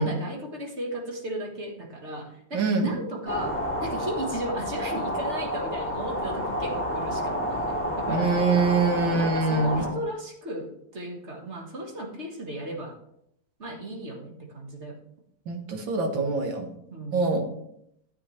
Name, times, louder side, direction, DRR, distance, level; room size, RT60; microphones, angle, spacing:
voice 1, 0.0-8.7 9.0-13.0 13.6-15.0 16.9-17.3, right 1 dB, 40° right, 1 dB, 1.6 m, -36 dB
voice 2, 2.5-2.9 8.1-9.9 15.5-16.7 17.1-17.5, right 3 dB, 80° right, 4 dB, 2.1 m, -24 dB
sound 1, 3.3-9.9, equal, 5° left, 2.0 m, -30 dB
12.5 x 8.1 x 3.2 m, 0.75 s
omnidirectional pair, 2.1 m